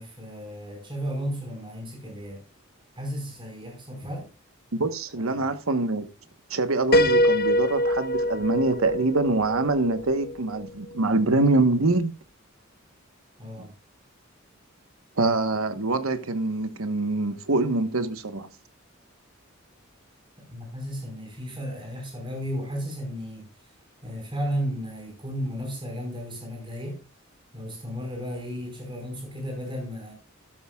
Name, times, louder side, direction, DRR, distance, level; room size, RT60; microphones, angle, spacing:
voice 1, 0.0-2.4 3.0-4.3 5.1-5.5 13.4-13.7 20.5-23.5 24.0-27.0 27.5-30.1, equal, 20° right, 5.0 m, -34 dB
voice 2, 4.7-6.1 6.5-12.1 15.2-18.5, right 2 dB, 75° right, 1.2 m, -24 dB
Piano, 6.9-10.7, equal, 45° left, 1.0 m, -24 dB
13.0 x 12.5 x 2.3 m
head